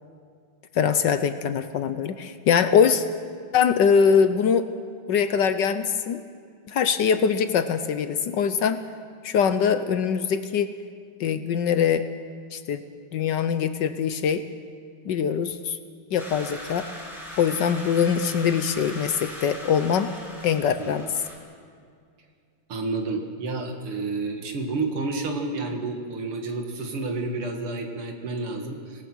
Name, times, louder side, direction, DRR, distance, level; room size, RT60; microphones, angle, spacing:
voice 1, 0.7-3.0 3.5-4.7 5.1-6.2 6.7-8.8 9.2-10.7 11.2-12.1 12.5-12.8 13.1-14.4 15.1-15.8 16.1-16.9 17.4-20.1 20.4-21.0, left 7 dB, 65° left, 11 dB, 1.2 m, -22 dB
sound 1, 16.2-21.4, equal, ahead, 4.6 m, -40 dB
voice 2, 20.8-21.1 22.7-29.0, right 3 dB, 85° right, 3 dB, 2.7 m, -30 dB
26.5 x 18.5 x 6.2 m, 2.2 s
omnidirectional pair, 2.4 m